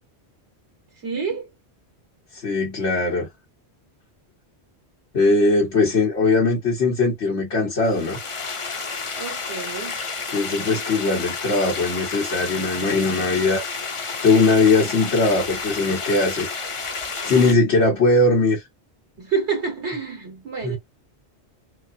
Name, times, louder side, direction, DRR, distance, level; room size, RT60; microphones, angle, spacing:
voice 1, 1.0-1.5 9.1-10.0 19.2-20.8, right 5 dB, 80° right, 1.8 m, -28 dB
voice 2, 2.3-3.3 5.1-8.2 10.3-13.9 14.2-16.5 17.2-18.6 20.6-20.8, left 3 dB, 85° left, 1.5 m, -20 dB
sound 1, 7.8-17.5, left 4 dB, 35° left, 0.6 m, -31 dB
4.1 x 2.6 x 2.6 m
omnidirectional pair, 1.1 m